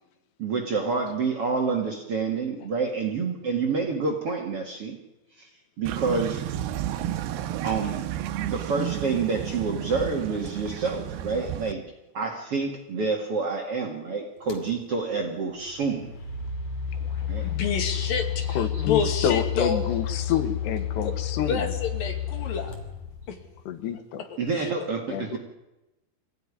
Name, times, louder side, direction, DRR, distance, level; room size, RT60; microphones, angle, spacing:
voice 1, 0.4-5.0 5.4-5.5 5.8-6.4 7.6-8.0 8.4-11.8 12.1-16.1 17.3-17.5 24.4-25.4, right 4 dB, 45° right, 2 dB, 2.3 m, -28 dB
sound 1, 5.9-11.7, right 12 dB, 80° right, 2.9 m, -32 dB
sound 2, 14.5-14.7 15.6-23.6, left 9 dB, 40° left, 3.1 m, -31 dB
sound 3, 16.9-21.3, left 1 dB, 20° left, 5.4 m, -52 dB
voice 2, 17.4-19.8 21.0-21.1 21.5-22.8 23.3-23.4 24.5-24.9, left 6 dB, 60° left, 5 dB, 3.8 m, -29 dB
voice 3, 18.6-21.7 23.7-24.2 25.1-25.4, left 9 dB, 90° left, 9 dB, 3.8 m, -28 dB
23.5 x 16.0 x 10.0 m, 0.97 s
omnidirectional pair, 4.8 m